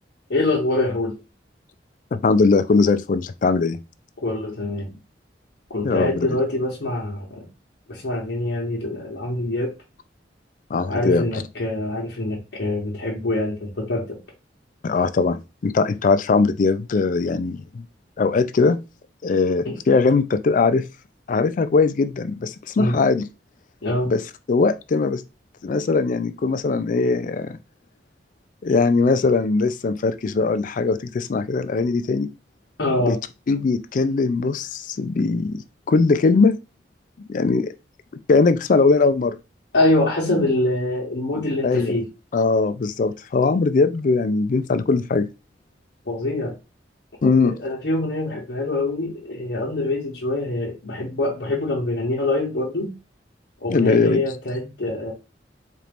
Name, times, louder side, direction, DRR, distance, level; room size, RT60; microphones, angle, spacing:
voice 1, 0.3-1.2 4.2-4.9 5.7-7.5 7.9-9.7 10.9-14.2 19.6-19.8 22.8-22.9 23.8-24.1 32.8-33.2 39.7-42.1 46.1-46.5 47.2-52.9 53.6-55.1, left 2 dB, 75° left, 1.0 m, -24 dB
voice 2, 2.1-3.8 5.8-6.4 10.7-11.2 14.8-17.8 18.2-18.8 19.2-20.9 21.3-23.3 24.0-24.2 24.5-25.2 25.6-27.6 28.6-32.3 33.0-33.2 33.5-36.6 37.3-37.7 38.3-39.4 41.6-41.9 42.3-45.3 47.2-47.5 53.7-54.2, left 4 dB, 50° left, 0.4 m, -20 dB
4.3 x 2.5 x 3.4 m
head